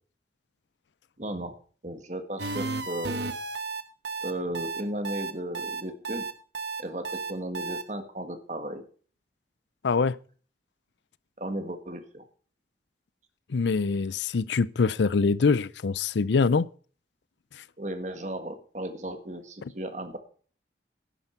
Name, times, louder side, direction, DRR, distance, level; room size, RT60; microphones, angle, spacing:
voice 1, 1.2-1.5 1.8-3.3 4.2-6.3 6.8-8.8 11.4-12.3 17.8-20.2, right 1 dB, 40° right, 1.7 m, -35 dB
sound 1, 2.4-7.8, right 3 dB, 75° right, 1.3 m, -33 dB
voice 2, 9.8-10.2 13.5-16.7, left 4 dB, 85° left, 0.5 m, -24 dB
11.0 x 9.7 x 5.8 m
head